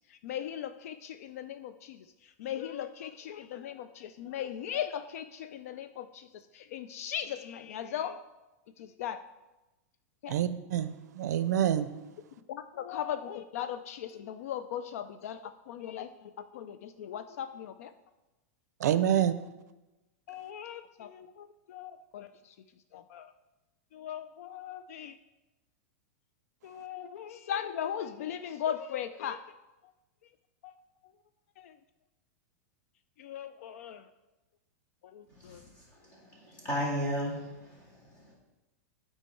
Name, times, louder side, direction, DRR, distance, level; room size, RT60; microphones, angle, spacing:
voice 1, 0.1-2.0 2.4-6.3 6.5-8.2 8.8-9.2 10.2-10.3 12.5-17.9 20.3-22.5 22.9-23.3 23.9-25.1 26.6-29.4 30.6-30.7 31.6-31.7 33.2-34.0 35.0-35.6, left 9 dB, 60° left, 0.3 m, -38 dB
voice 2, 10.3-11.9 18.8-19.3, right 10 dB, 85° right, 0.5 m, -27 dB
voice 3, 35.3-35.7 36.0-38.3, equal, 20° left, 2.2 m, -35 dB
9.1 x 4.4 x 4.5 m
supercardioid pair, 165°, 9 cm